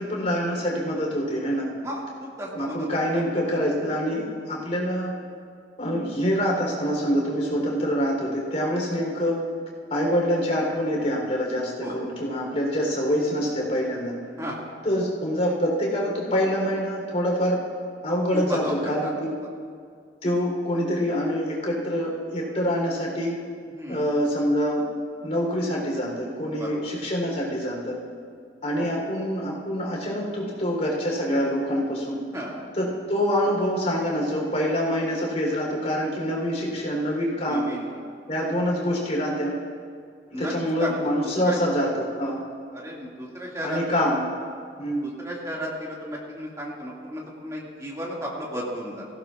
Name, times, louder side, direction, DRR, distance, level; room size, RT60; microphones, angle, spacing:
voice 1, 0.0-1.7 2.5-5.2 5.8-9.4 9.9-14.2 14.8-17.6 18.0-19.4 20.2-23.4 23.9-24.9 25.2-28.0 28.6-32.2 32.8-37.7 38.3-39.6 40.4-42.4 43.6-44.2 44.8-45.1, equal, 40° left, -2 dB, 3.8 m, -25 dB
voice 2, 1.8-2.9 3.1-3.2 11.8-12.0 14.4-14.6 18.3-19.1 23.7-24.1 26.6-26.9 28.8-29.0 32.3-32.6 37.5-37.9 40.3-40.5 40.8-41.0 41.2-41.6 42.7-44.1 45.0-49.1, equal, 15° right, -4 dB, 2.2 m, -34 dB
18.0 x 16.0 x 2.5 m, 2.1 s
head